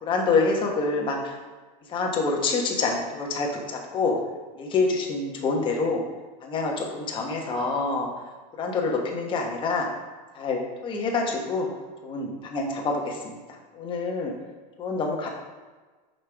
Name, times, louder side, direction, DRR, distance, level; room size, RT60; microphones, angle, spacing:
voice 1, 0.0-1.3 1.9-4.2 4.5-6.0 6.4-8.1 8.6-9.9 10.3-11.7 12.0-13.4 13.7-14.3 14.8-15.3, left 3 dB, 25° left, 0 dB, 1.1 m, -26 dB
6.5 x 5.4 x 3.4 m, 1.3 s
supercardioid pair, 145°, 21 cm